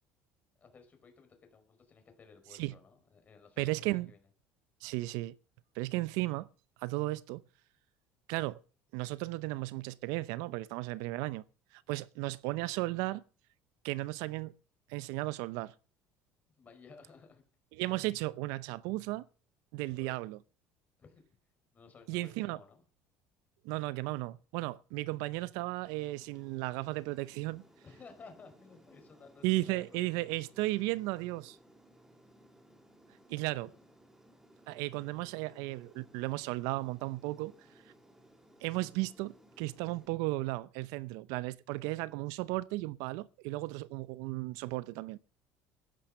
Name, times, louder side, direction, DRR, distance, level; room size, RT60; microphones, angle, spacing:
voice 1, 0.6-4.2 16.6-17.4 17.9-18.0 19.9-20.1 21.0-21.4 21.7-22.8 27.8-30.3 33.6-33.7, left 5 dB, 25° left, 5.0 m, -56 dB
voice 2, 3.6-4.1 4.8-5.4 5.8-6.5 6.8-7.4 8.3-8.6 8.9-11.4 11.7-13.2 13.8-14.5 14.9-15.7 17.7-19.3 19.7-20.4 22.1-22.6 23.6-27.6 29.4-31.6 33.3-33.7 34.7-37.6 38.6-45.2, right 19 dB, 80° right, 0.7 m, -35 dB
Aircraft, 25.8-40.1, right 1 dB, 5° right, 2.9 m, -61 dB
13.0 x 10.5 x 6.6 m
cardioid pair, 135°, 6 cm